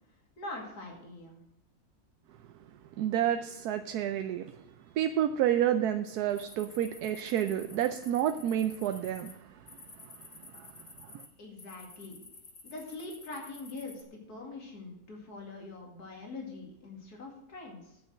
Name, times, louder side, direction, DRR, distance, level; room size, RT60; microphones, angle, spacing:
voice 1, 0.4-1.4 11.4-12.2 12.6-18.0, left 3 dB, 90° left, 0 dB, 2.7 m, -43 dB
voice 2, 3.0-4.5 5.0-9.6 10.0-10.1 10.5-10.7 11.0-11.2, right 10 dB, 90° right, 8 dB, 1.2 m, -30 dB
sound 1, 6.3-9.3 9.7-11.3 11.6-14.0, left 3 dB, 40° left, 1.6 m, -51 dB
9.0 x 6.9 x 7.5 m, 0.86 s
omnidirectional pair, 1.6 m